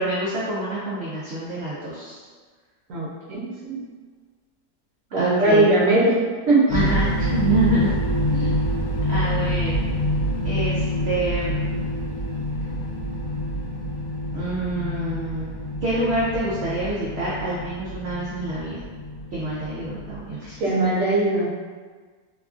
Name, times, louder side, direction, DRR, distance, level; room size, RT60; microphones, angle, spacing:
voice 1, 0.0-2.2 5.2-5.8 6.7-8.0 8.3-8.6 9.1-9.9 10.4-11.7 14.3-15.6 15.8-18.8 19.3-20.6, right 1 dB, 90° right, -8 dB, 0.5 m, -27 dB
voice 2, 2.9-3.8 5.1-6.1 6.5-6.7 20.6-21.5, right 2 dB, 60° right, -5 dB, 1.0 m, -20 dB
sound 1, 6.7-20.7, equal, 70° left, 0.7 m, -27 dB
2.9 x 2.3 x 2.4 m, 1.5 s
omnidirectional pair, 1.8 m